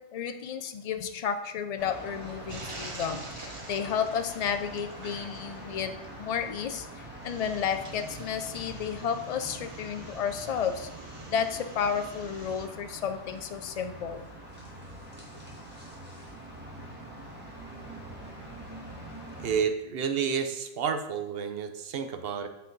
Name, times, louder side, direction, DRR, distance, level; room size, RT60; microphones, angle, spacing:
voice 1, 0.0-10.9 11.3-14.3, left 7 dB, 80° left, 8 dB, 0.3 m, -32 dB
sound 1, 1.8-19.6, right 1 dB, 10° right, 1.5 m, -44 dB
sound 2, 2.5-12.7, right 3 dB, 30° right, 0.7 m, -46 dB
voice 2, 19.4-22.5, right 7 dB, 60° right, 7 dB, 0.8 m, -30 dB
7.5 x 4.4 x 3.8 m, 0.94 s
omnidirectional pair, 1.2 m